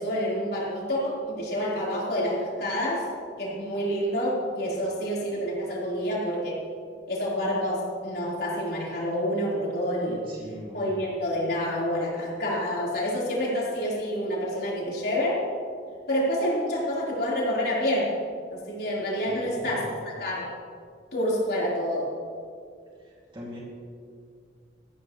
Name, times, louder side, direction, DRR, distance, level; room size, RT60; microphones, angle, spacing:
voice 1, 0.0-3.1 3.4-6.6 7.1-10.2 10.7-15.4 16.1-18.1 18.5-20.5 21.1-22.1, equal, 55° left, -6 dB, 4.2 m, -28 dB
voice 2, 10.0-11.0 19.2-19.9 23.0-23.6, equal, 25° right, -5 dB, 2.5 m, -42 dB
18.5 x 14.0 x 3.2 m, 2.3 s
head